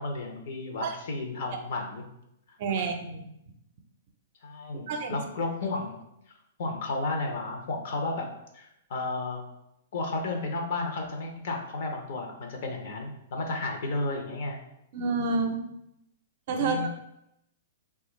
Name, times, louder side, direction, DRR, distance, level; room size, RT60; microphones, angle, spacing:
voice 1, 0.0-2.0 2.8-2.9 4.4-6.0 6.6-8.3 8.5-9.4 9.9-14.6 16.6-16.9, left 2 dB, 60° left, 2 dB, 0.7 m, -33 dB
voice 2, 2.6-3.2 4.9-5.2 14.9-15.6 16.5-16.9, right 4 dB, 55° right, 4 dB, 0.5 m, -28 dB
3.2 x 2.3 x 3.0 m, 0.81 s
hypercardioid pair, 140°, 0 cm